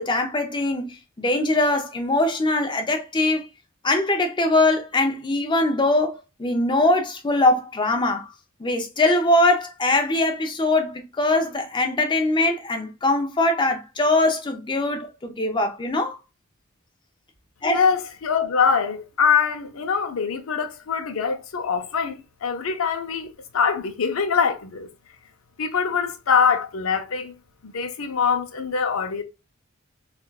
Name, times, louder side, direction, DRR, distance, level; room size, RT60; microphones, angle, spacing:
voice 1, 0.0-3.5 3.8-6.1 6.4-8.3 8.6-16.2 17.6-17.8, left 2 dB, 20° left, 0.5 m, -22 dB
voice 2, 17.7-24.9 25.6-27.3 27.6-29.2, left 6 dB, 70° left, 0.5 m, -23 dB
3.6 x 2.3 x 2.3 m
head